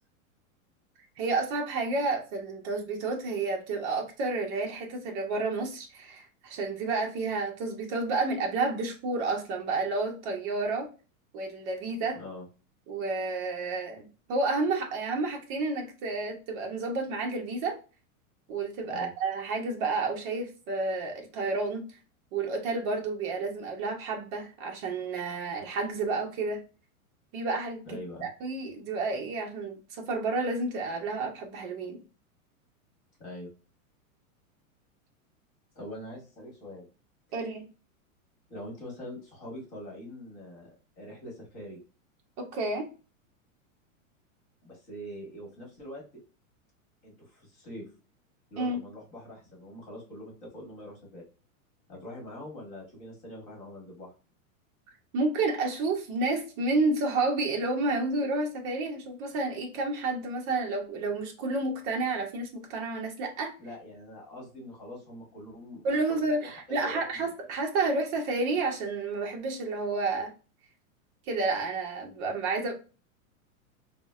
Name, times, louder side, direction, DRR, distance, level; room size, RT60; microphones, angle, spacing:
voice 1, 1.2-10.9 11.3-12.2 12.9-17.8 18.5-21.9 22.3-26.6 27.3-27.8 28.2-32.0 37.3-37.7 42.4-42.9 48.6-48.8 55.1-63.5 65.8-70.3 71.3-72.7, right 3 dB, 25° right, 0.6 m, -30 dB
voice 2, 12.1-12.4 18.9-19.1 27.8-28.3 33.2-33.5 35.7-36.8 38.5-41.8 44.6-46.0 47.0-47.9 48.5-51.2 51.9-54.1 63.6-67.3, left 1 dB, 35° left, 1.4 m, -43 dB
3.7 x 2.1 x 2.2 m
supercardioid pair, 160°, 42 cm